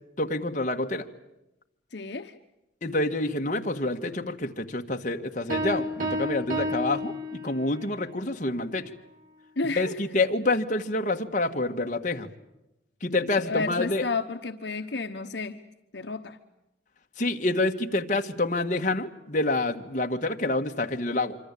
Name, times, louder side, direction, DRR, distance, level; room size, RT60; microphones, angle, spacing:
voice 1, 0.2-1.1 2.8-8.9 9.8-12.3 13.0-14.1 17.2-21.4, left 2 dB, 45° left, 3 dB, 1.7 m, -27 dB
voice 2, 1.9-2.3 9.6-10.1 13.4-15.6 15.9-16.4, left 3 dB, 70° left, 6 dB, 1.2 m, -31 dB
Piano, 5.5-7.9, left 1 dB, 45° right, 4.3 m, -31 dB
25.5 x 25.5 x 8.5 m, 0.91 s
head